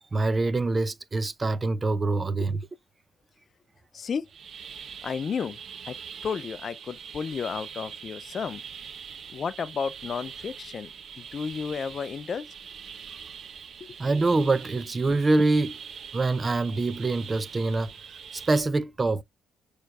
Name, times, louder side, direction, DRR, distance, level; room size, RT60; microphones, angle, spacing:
voice 1, 0.1-2.6 14.0-15.8 16.1-17.9 18.3-19.2, right 3 dB, 30° right, 0.6 m, -25 dB
voice 2, 3.9-4.3 5.0-5.6 5.9-6.0 6.2-8.6 9.3-12.5 13.8-14.0, left 6 dB, 50° left, 0.4 m, -32 dB
sound 1, 4.3-18.6, right 7 dB, 65° right, 0.9 m, -43 dB
6.2 x 3.2 x 2.3 m
supercardioid pair, 60°, 0 cm